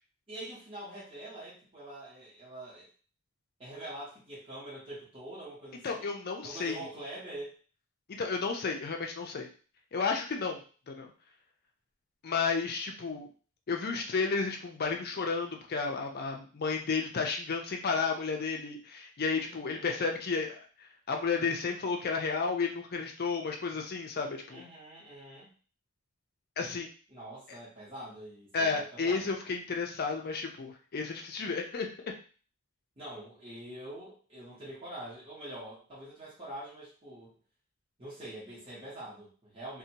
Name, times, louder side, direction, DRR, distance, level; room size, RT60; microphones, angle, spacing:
voice 1, 0.3-2.9 3.6-6.1 6.4-7.5 19.5-20.0 24.5-25.5 27.1-29.4 33.0-37.4 38.0-39.8, right 1 dB, 25° right, -9 dB, 0.9 m, -45 dB
voice 2, 5.8-6.9 8.2-9.5 9.9-11.1 12.2-13.3 13.7-20.6 21.1-24.6 26.6-26.9 28.5-32.1, left 4 dB, 45° left, 3 dB, 0.4 m, -32 dB
2.7 x 2.1 x 2.8 m, 0.39 s
head